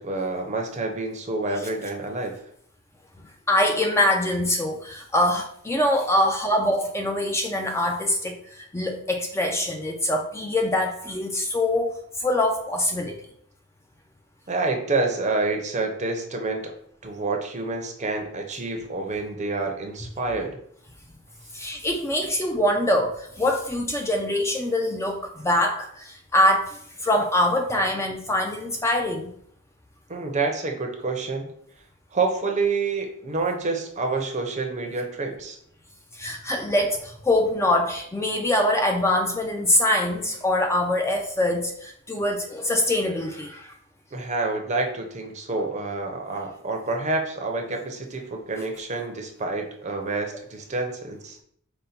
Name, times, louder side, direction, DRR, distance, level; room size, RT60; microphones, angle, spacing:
voice 1, 0.0-2.4 14.5-16.7 17.0-20.6 30.1-31.5 32.1-35.6 44.1-51.4, right 3 dB, 35° right, 3 dB, 0.6 m, -28 dB
voice 2, 3.5-13.2 21.5-29.3 36.1-43.7, left 1 dB, 15° left, 2 dB, 0.4 m, -24 dB
5.1 x 2.2 x 4.2 m, 0.66 s
head